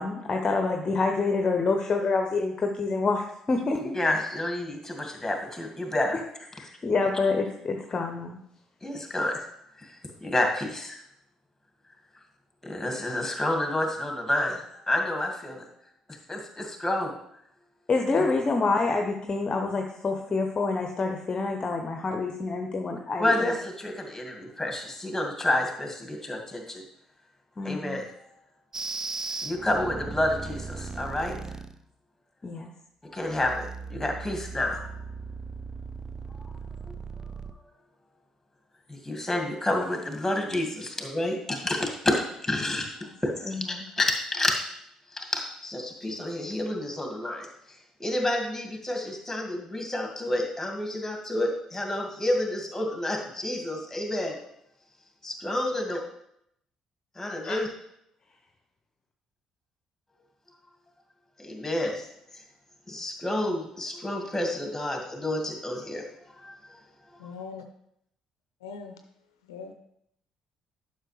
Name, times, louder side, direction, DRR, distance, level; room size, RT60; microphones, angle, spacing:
voice 1, 0.0-4.0 6.5-8.4 17.9-23.5 27.6-28.0 32.4-32.7 43.4-43.8 57.4-57.6, left 3 dB, 35° left, 4 dB, 0.8 m, -27 dB
voice 2, 3.9-6.2 8.8-9.4 10.2-11.0 12.7-14.6 14.9-15.6 16.3-17.1 23.2-26.8 27.6-28.0 29.4-31.3 33.1-33.6 33.9-34.8 38.9-42.1 42.5-42.9 43.2-43.6 44.0-44.1 44.3-44.5 45.2-47.5 48.0-54.3 55.2-56.0 57.2-57.7 61.4-61.9 62.9-66.0, left 1 dB, 10° left, 2 dB, 2.1 m, -29 dB
sound 1, 28.7-31.8 33.2-37.5, right 4 dB, 25° right, 0.5 m, -38 dB
voice 3, 67.2-67.6 68.6-68.9 69.4-69.7, left 5 dB, 75° left, 6 dB, 0.5 m, -40 dB
11.0 x 5.7 x 3.3 m, 0.75 s
figure-of-eight pair, 45°, 2 cm